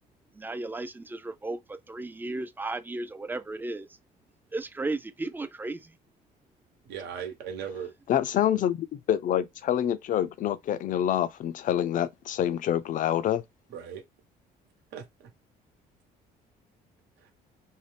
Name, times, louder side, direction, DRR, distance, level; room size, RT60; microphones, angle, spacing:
voice 1, 0.3-3.9 4.5-5.9, right 2 dB, 10° right, 0.4 m, -35 dB
voice 2, 6.8-7.9 8.6-8.7 13.7-14.0 14.9-15.3 17.2-17.3, right 8 dB, 85° right, 1.1 m, -38 dB
voice 3, 8.1-13.4, left 10 dB, 50° left, 0.4 m, -26 dB
2.6 x 2.1 x 3.3 m
cardioid pair, 110°, 17 cm